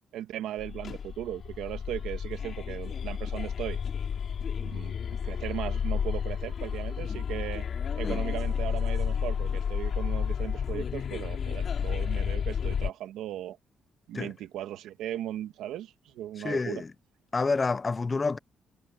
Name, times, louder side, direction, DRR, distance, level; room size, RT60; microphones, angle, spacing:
voice 1, 0.1-3.8 4.6-7.6 8.0-13.6 14.1-16.8, right 12 dB, 85° right, 2.0 m, -37 dB
sound 1, 0.6-12.9, left 7 dB, 55° left, 3.2 m, -31 dB
voice 2, 16.4-16.9 17.3-18.4, left 4 dB, 30° left, 1.0 m, -29 dB
cardioid pair, 90°, 0 cm